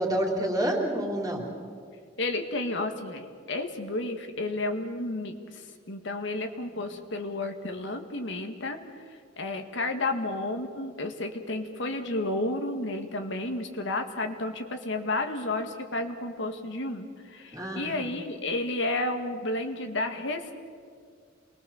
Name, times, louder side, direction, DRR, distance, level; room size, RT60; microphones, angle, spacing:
voice 1, 0.0-1.4 17.5-18.1, right 1 dB, 20° right, 1 dB, 3.4 m, -28 dB
voice 2, 2.2-8.8 9.4-20.5, left 2 dB, 70° left, 5 dB, 1.9 m, -32 dB
28.0 x 21.0 x 7.2 m, 2.1 s
head